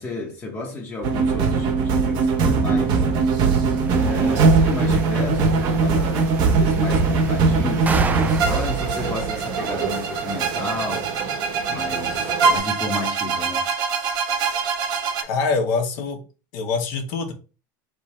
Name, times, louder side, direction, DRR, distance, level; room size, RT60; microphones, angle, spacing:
voice 1, 0.0-3.1 3.9-11.1 11.7-13.7, left 2 dB, 25° left, 1.1 m, -32 dB
sound 1, 1.0-15.2, right 4 dB, 50° right, 0.9 m, -21 dB
sound 2, 3.7-10.8, right 5 dB, 15° right, 0.4 m, -35 dB
sound 3, 3.9-12.6, right 6 dB, 75° right, 1.2 m, -32 dB
voice 2, 15.2-16.2 16.5-17.3, left 4 dB, 70° left, 1.3 m, -24 dB
4.3 x 3.4 x 3.2 m
supercardioid pair, 130°, 10 cm